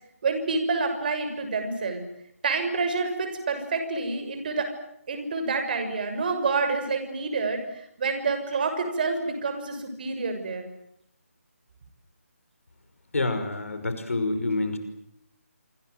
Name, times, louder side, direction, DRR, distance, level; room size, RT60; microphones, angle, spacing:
voice 1, 0.2-2.0 2.4-4.7 5.1-10.6, right 4 dB, 35° right, 8 dB, 6.7 m, -28 dB
voice 2, 13.1-14.8, left 2 dB, 65° left, 9 dB, 5.7 m, -27 dB
27.0 x 26.0 x 7.9 m, 0.75 s
figure-of-eight pair, 150°, 8 cm